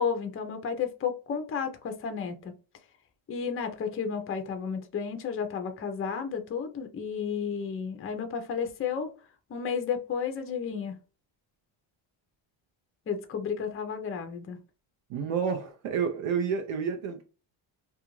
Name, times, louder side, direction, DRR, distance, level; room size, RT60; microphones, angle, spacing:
voice 1, 0.0-2.5 3.3-9.1 9.5-11.0 13.1-14.6, left 6 dB, 30° left, 0.5 m, -32 dB
voice 2, 15.1-17.2, right 6 dB, 70° right, 0.6 m, -29 dB
2.4 x 2.3 x 2.9 m
cardioid pair, 105°, 49 cm